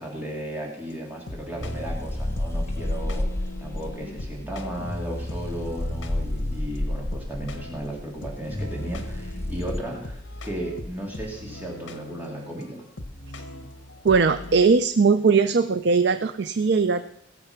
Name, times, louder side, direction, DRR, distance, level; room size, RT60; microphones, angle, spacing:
voice 1, 0.0-3.3 3.6-12.8, right 1 dB, 10° right, -2 dB, 2.7 m, -35 dB
sound 1, 0.9-14.7, left 2 dB, 80° left, 1.2 m, -41 dB
sound 2, 1.6-9.8, left 1 dB, 15° left, 0.5 m, -30 dB
voice 2, 14.0-17.1, right 4 dB, 60° right, 11 dB, 0.5 m, -20 dB
19.0 x 6.9 x 5.8 m, 0.73 s
head